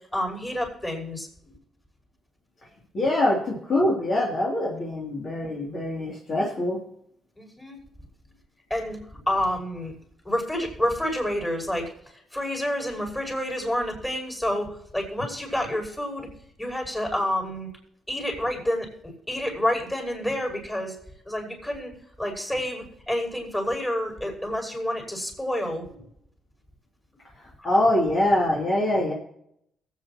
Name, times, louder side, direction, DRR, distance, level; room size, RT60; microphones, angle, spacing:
voice 1, 0.1-1.6 7.4-7.8 8.7-9.9 10.2-11.9 12.3-16.3 16.6-17.7 18.1-18.9 19.3-21.0 21.3-21.9 22.2-26.0, left 1 dB, 15° left, 1 dB, 5.3 m, -29 dB
voice 2, 2.9-6.8 27.6-29.1, left 1 dB, 50° left, -4 dB, 3.0 m, -24 dB
22.5 x 8.4 x 3.0 m, 0.73 s
cardioid pair, 90°, 0 cm